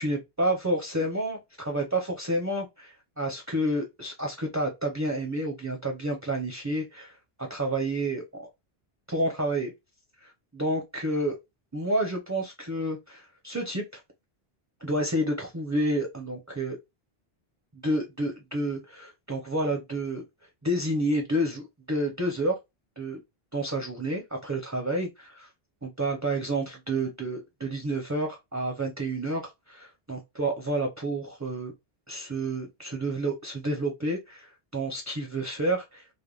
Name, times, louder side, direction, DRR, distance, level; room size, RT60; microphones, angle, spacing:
voice 1, 0.0-8.5 9.1-9.7 10.2-11.4 11.7-14.0 14.8-16.8 17.7-20.2 20.6-22.6 23.0-23.2 23.5-25.5 25.8-31.7 32.1-36.1, right 1 dB, 20° right, 0.5 m, -30 dB
3.4 x 2.1 x 2.3 m
omnidirectional pair, 1.0 m